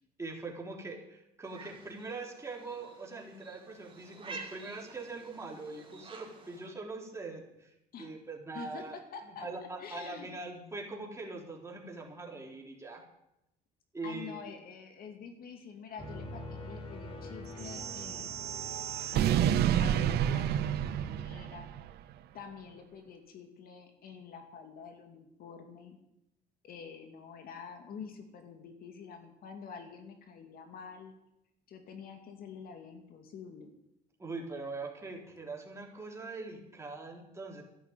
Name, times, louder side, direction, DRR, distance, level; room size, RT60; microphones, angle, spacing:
voice 1, 0.2-9.0 9.3-13.0 13.9-14.5 34.2-37.6, right 3 dB, 15° right, 0 dB, 3.7 m, -42 dB
sound 1, 1.4-6.7, right 4 dB, 30° right, 3.1 m, -50 dB
voice 2, 8.5-9.5 9.8-10.3 14.0-18.8 19.1-21.7 22.3-26.0 26.6-31.1 31.7-33.7, left 6 dB, 60° left, 5 dB, 2.3 m, -47 dB
sound 2, 16.0-21.1, left 2 dB, 35° left, 3.5 m, -45 dB
sound 3, 17.6-21.9, right 10 dB, 75° right, 0.8 m, -30 dB
12.5 x 11.0 x 9.0 m, 0.86 s
cardioid pair, 110°, 17 cm